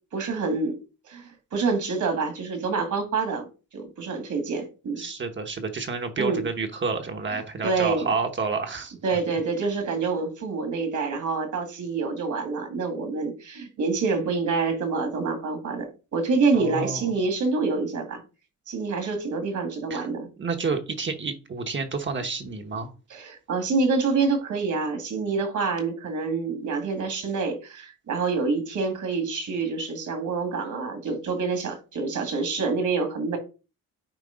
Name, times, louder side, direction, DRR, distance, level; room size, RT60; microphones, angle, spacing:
voice 1, 0.1-0.8 1.1-3.4 3.7-5.0 6.2-6.4 7.6-8.1 9.0-18.2 18.7-20.3 23.1-33.4, right 4 dB, 60° right, 2.0 m, -27 dB
voice 2, 5.0-8.9 16.5-17.1 19.9-20.1 20.4-22.9, right 4 dB, 35° right, 1.0 m, -29 dB
8.9 x 3.2 x 5.0 m
cardioid pair, 145°, 33 cm